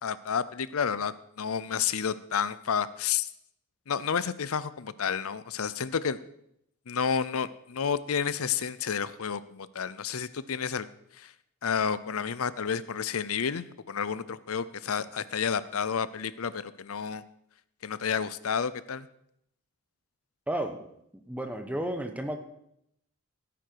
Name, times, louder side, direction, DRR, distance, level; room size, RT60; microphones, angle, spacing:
voice 1, 0.0-3.3 3.9-6.2 6.9-10.9 11.2-11.3 11.6-17.2 17.8-19.1, left 7 dB, 70° left, 16 dB, 0.6 m, -30 dB
voice 2, 20.5-20.8 21.1-22.4, right 1 dB, 5° right, 6 dB, 1.2 m, -32 dB
16.0 x 9.1 x 4.7 m, 0.76 s
head